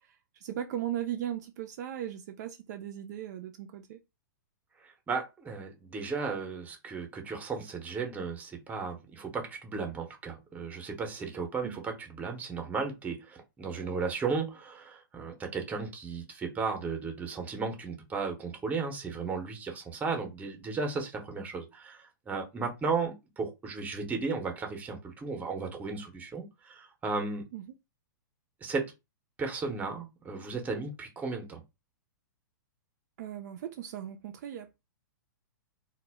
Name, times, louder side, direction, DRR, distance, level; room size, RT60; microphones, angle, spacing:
voice 1, 0.0-4.0 11.6-11.8 27.5-27.7 33.2-34.8, right 11 dB, 55° right, 0.3 m, -38 dB
voice 2, 5.1-27.5 28.6-28.9 29.4-31.6, right 4 dB, 15° right, 0.7 m, -35 dB
2.1 x 2.0 x 3.3 m
hypercardioid pair, 120°, 11 cm